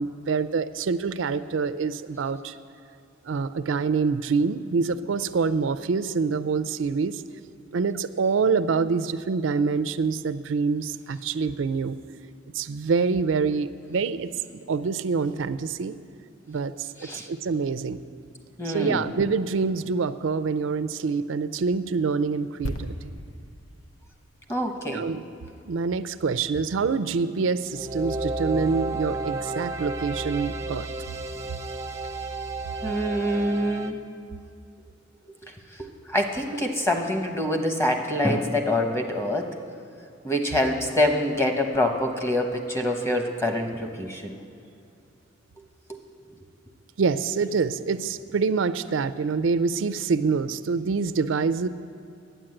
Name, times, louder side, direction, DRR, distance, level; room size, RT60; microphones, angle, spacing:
voice 1, 0.0-2.6 3.2-7.2 7.7-12.0 12.5-14.3 14.7-15.9 16.5-18.0 18.6-23.1 24.9-25.2 25.7-30.9 47.0-51.7, right 5 dB, 85° right, 14 dB, 0.4 m, -26 dB
voice 2, 18.6-19.1 24.5-25.0 32.8-34.0 35.4-39.6 40.2-44.4 45.9-46.0, left 1 dB, 15° left, 3 dB, 1.1 m, -26 dB
sound 1, 22.6-26.3 26.6-26.8, equal, 85° left, 0.8 m, -39 dB
sound 2, 27.7-33.9, right 2 dB, 15° right, 0.6 m, -32 dB
10.0 x 9.1 x 7.7 m, 2.6 s
head